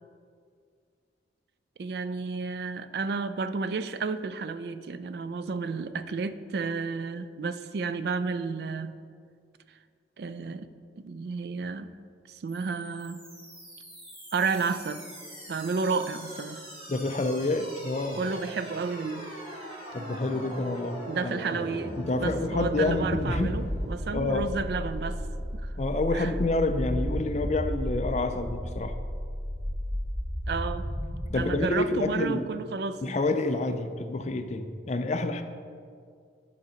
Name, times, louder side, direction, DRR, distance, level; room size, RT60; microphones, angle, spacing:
voice 1, 1.8-8.9 10.2-10.7 11.0-11.9 12.3-13.2 14.3-15.0 15.5-16.6 18.2-19.3 21.1-25.2 25.5-25.7 26.1-26.3 30.5-30.9 31.3-33.0, right 4 dB, 55° right, 12 dB, 0.3 m, -31 dB
sound 1, 12.5-31.5, equal, 30° right, 1.8 m, -36 dB
voice 2, 16.9-18.2 19.9-21.4 22.0-23.6 24.1-24.5 25.8-28.9 31.3-32.5 33.0-35.4, left 2 dB, 35° left, 8 dB, 0.4 m, -28 dB
10.5 x 3.8 x 5.6 m, 2.2 s
head